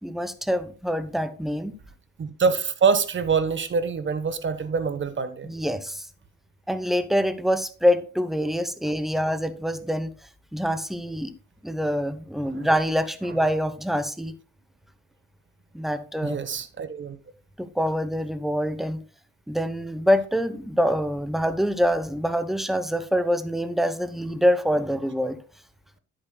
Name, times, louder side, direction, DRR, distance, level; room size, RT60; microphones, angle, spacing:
voice 1, 0.0-1.7 5.4-6.1 6.7-10.1 10.5-11.3 11.6-14.4 15.7-16.4 17.6-19.0 19.5-25.4, equal, ahead, 0.8 m, -25 dB
voice 2, 2.2-5.5 12.5-12.7 16.2-17.2, right 5 dB, 40° right, 1.1 m, -25 dB
10.0 x 8.9 x 2.3 m
cardioid pair, 90°, 30 cm